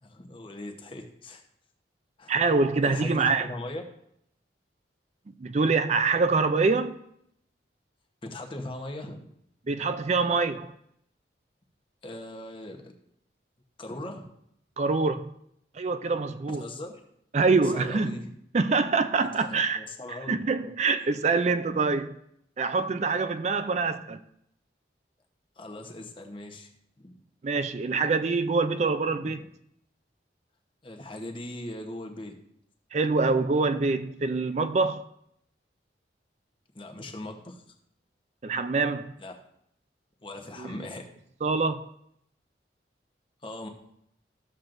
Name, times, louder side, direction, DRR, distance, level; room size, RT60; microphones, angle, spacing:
voice 1, 0.0-1.4 2.2-2.3 2.8-3.8 8.2-9.3 12.0-12.9 13.8-14.3 16.5-16.9 17.6-18.3 19.4-20.4 25.6-26.7 27.0-27.1 29.1-29.4 30.8-32.3 36.7-37.6 39.2-39.3 40.2-41.1 43.4-43.7, left 1 dB, 30° left, 1.0 m, -39 dB
voice 2, 2.3-3.5 5.4-7.0 9.7-10.7 14.8-15.3 15.7-16.6 17.3-18.1 18.5-19.8 20.3-22.2 22.6-24.2 27.4-29.4 32.9-35.0 38.4-39.1 40.6-40.7 41.4-41.9, right 4 dB, 40° right, 0.4 m, -25 dB
13.0 x 7.4 x 2.6 m
head